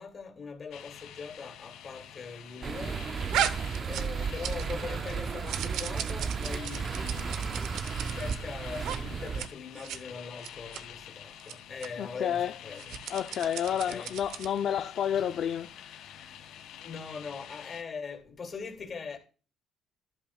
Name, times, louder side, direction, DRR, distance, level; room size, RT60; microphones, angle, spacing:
voice 1, 0.0-3.0 3.9-7.5 8.1-13.0 13.7-14.1 15.1-15.4 16.8-19.2, left 5 dB, 35° left, 2.8 m, -41 dB
sound 1, 0.7-17.8, left 10 dB, 80° left, 2.1 m, -48 dB
sound 2, 2.6-9.5, right 6 dB, 40° right, 0.6 m, -34 dB
sound 3, 3.3-4.8 5.1-8.4 8.8-9.0 9.3-9.5 9.8-10.0 10.4-10.8 11.4-11.5 11.8-11.9 12.7-14.6, right 10 dB, 75° right, 0.9 m, -35 dB
voice 2, 12.0-12.5 13.1-16.4, left 9 dB, 55° left, 0.6 m, -31 dB
13.0 x 11.5 x 2.4 m
cardioid pair, 105°, 0 cm